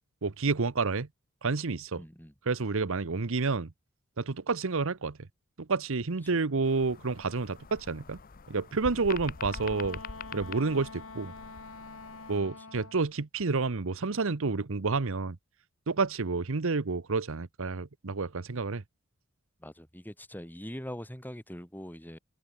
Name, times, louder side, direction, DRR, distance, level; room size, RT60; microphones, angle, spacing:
voice 1, 0.2-1.1 1.4-2.0 2.5-3.7 4.2-5.2 5.6-8.2 8.5-10.0 10.3-11.3 12.3-15.4 15.9-18.8, right 4 dB, 65° right, 0.9 m, -29 dB
voice 2, 2.0-2.3 6.3-6.4 8.9-9.0 19.6-22.2, equal, 10° left, 4.6 m, -42 dB
sound 1, 6.6-12.4, left 5 dB, 45° left, 0.8 m, -44 dB
Wind instrument woodwind instrument, 9.4-13.1, left 3 dB, 70° left, 3.8 m, -46 dB
head